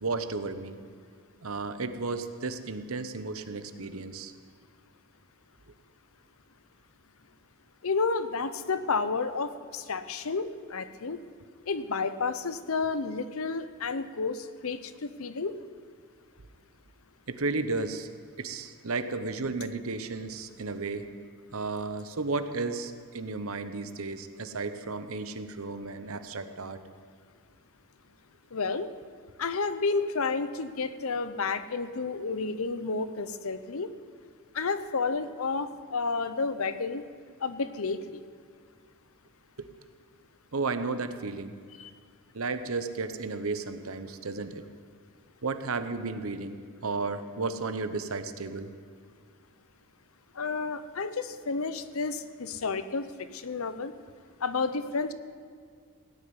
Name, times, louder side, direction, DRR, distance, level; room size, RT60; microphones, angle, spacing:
voice 1, 0.0-0.8 1.4-4.3 17.3-18.1 18.4-21.1 21.5-26.8 39.6-39.7 40.5-41.6 42.3-44.6 45.4-48.7, right 3 dB, 70° right, 10 dB, 0.9 m, -33 dB
voice 2, 7.8-11.2 11.7-15.5 28.5-28.9 29.4-33.9 34.5-37.0 37.4-38.2 41.8-41.9 50.4-53.1 53.3-53.9 54.4-55.1, left 4 dB, 70° left, 12 dB, 0.8 m, -31 dB
17.0 x 6.7 x 9.7 m, 2.1 s
head